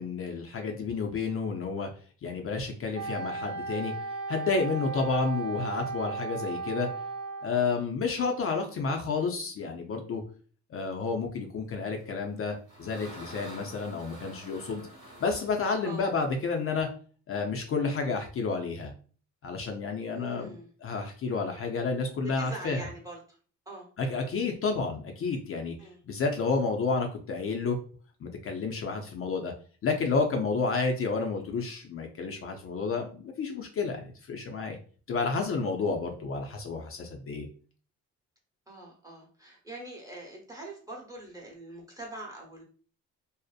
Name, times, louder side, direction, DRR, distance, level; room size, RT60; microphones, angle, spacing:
voice 1, 0.0-1.9 2.2-3.9 4.3-6.9 7.4-10.2 10.7-14.8 15.2-16.9 17.3-18.9 19.4-20.6 20.8-22.9 24.0-25.7 26.1-27.8 28.2-29.5 29.8-34.8 35.1-37.5, left 4 dB, 50° left, 3 dB, 0.5 m, -30 dB
Wind instrument woodwind instrument, 2.9-7.8, right 3 dB, 60° right, 0.6 m, -36 dB
sound 1, 12.2-16.9, right 1 dB, 80° right, 1.1 m, -48 dB
voice 2, 20.1-20.7 22.2-23.2 23.7-23.9 25.8-26.0 38.7-42.6, right 2 dB, 10° right, -2 dB, 0.9 m, -43 dB
2.6 x 2.0 x 2.4 m, 0.41 s
cardioid pair, 90°, 30 cm